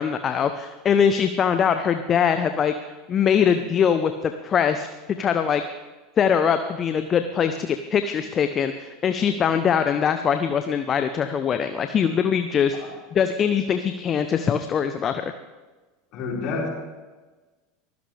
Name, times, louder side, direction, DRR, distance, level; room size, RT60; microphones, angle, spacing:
voice 1, 0.0-2.7 3.1-4.9 5.2-5.6 6.2-12.8 13.1-15.3, left 7 dB, 35° left, 9 dB, 0.9 m, -22 dB
voice 2, 16.1-16.7, left 4 dB, 50° left, -2 dB, 5.3 m, -29 dB
24.0 x 16.0 x 3.5 m, 1.3 s
figure-of-eight pair, 75°, 0 cm